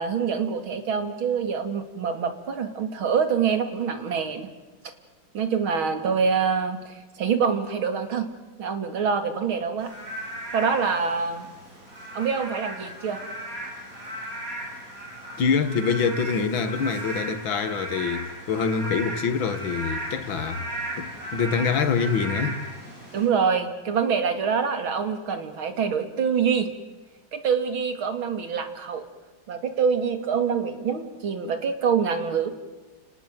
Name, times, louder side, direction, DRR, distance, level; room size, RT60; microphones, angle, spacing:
voice 1, 0.0-4.5 5.3-8.3 8.6-9.9 10.5-11.5 12.1-13.2 23.1-26.7 27.3-29.0 29.5-32.5, right 6 dB, 75° right, 3.1 m, -25 dB
Frog / Rain, 9.8-23.3, right 1 dB, 40° right, 7.7 m, -36 dB
voice 2, 15.4-20.6 21.0-22.6, left 5 dB, 70° left, 2.4 m, -25 dB
30.0 x 19.0 x 9.1 m
omnidirectional pair, 2.3 m